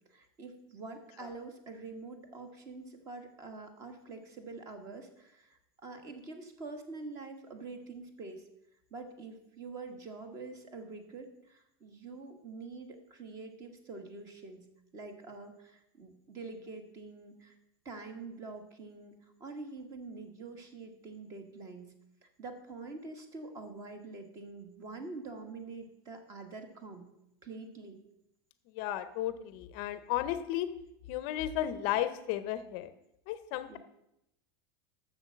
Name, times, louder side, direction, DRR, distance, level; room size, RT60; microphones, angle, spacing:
voice 1, 0.1-8.4 8.9-14.7 14.9-17.5 17.8-21.9 22.2-27.0 27.4-28.0 33.7-33.8, right 3 dB, 25° right, 7 dB, 1.3 m, -46 dB
voice 2, 28.7-30.7 31.1-32.9 33.3-33.8, left 12 dB, 45° left, 12 dB, 0.6 m, -34 dB
7.8 x 6.8 x 7.4 m, 0.84 s
supercardioid pair, 170°, 12 cm